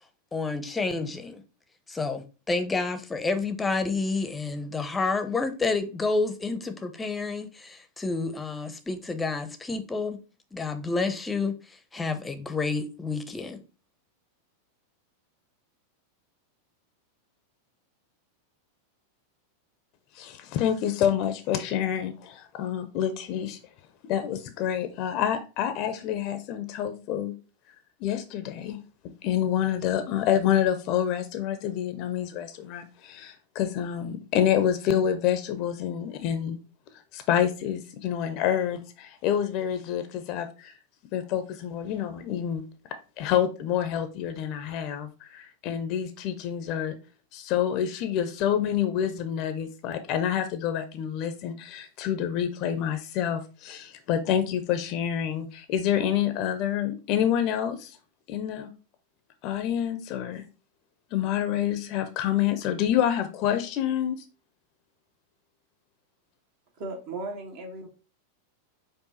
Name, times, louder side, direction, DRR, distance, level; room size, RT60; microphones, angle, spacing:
voice 1, 0.3-1.4 1.9-10.2 10.5-13.6, left 3 dB, 15° left, 0.7 m, -29 dB
voice 2, 20.2-23.6 24.0-27.3 28.0-28.8 29.0-36.6 37.1-40.7 41.1-42.6 43.2-47.0 47.3-58.0 58.3-58.7 59.4-60.4 61.1-64.2, left 9 dB, 50° left, 0.6 m, -27 dB
voice 3, 66.8-67.9, right 2 dB, 55° right, 1.5 m, -36 dB
4.7 x 2.6 x 4.0 m
hypercardioid pair, 100°, 0 cm